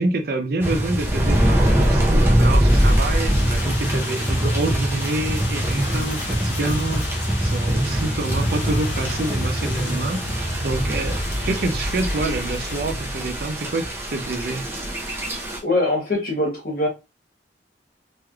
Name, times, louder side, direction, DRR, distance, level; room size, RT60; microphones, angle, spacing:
voice 1, 0.0-7.1 7.4-13.8 14.1-14.6, right 2 dB, 55° right, 0.5 m, -27 dB
sound 1, 0.6-15.6, equal, 15° right, 0.6 m, -22 dB
sound 2, 2.7-12.8, left 4 dB, 85° left, 0.5 m, -34 dB
Cutlery silverware, 5.0-7.2, left 1 dB, 10° left, 1.4 m, -42 dB
voice 2, 15.6-16.9, left 1 dB, 50° left, 1.2 m, -22 dB
3.2 x 3.1 x 2.3 m
head